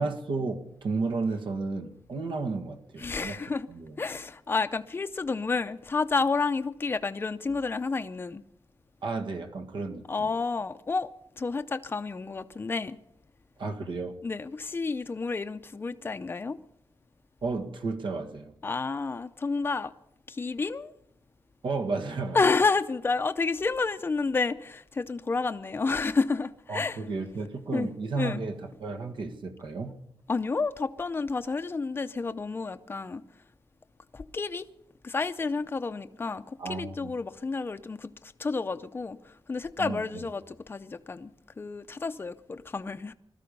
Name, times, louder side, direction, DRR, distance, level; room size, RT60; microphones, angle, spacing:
voice 1, 0.0-3.4 3.7-4.0 9.0-10.3 13.6-14.2 17.4-18.5 21.6-22.4 26.7-30.0 36.6-37.1 39.8-40.3, right 3 dB, 70° right, 1.7 m, -33 dB
voice 2, 3.0-3.7 4.0-8.4 10.1-11.1 11.4-13.0 14.2-16.6 18.6-19.9 20.3-20.9 22.3-27.0 27.7-28.4 30.3-33.2 34.1-34.7 35.0-41.3 41.6-43.1, left 4 dB, 25° left, 0.6 m, -30 dB
20.5 x 13.5 x 5.4 m
wide cardioid pair, 145°, 9 cm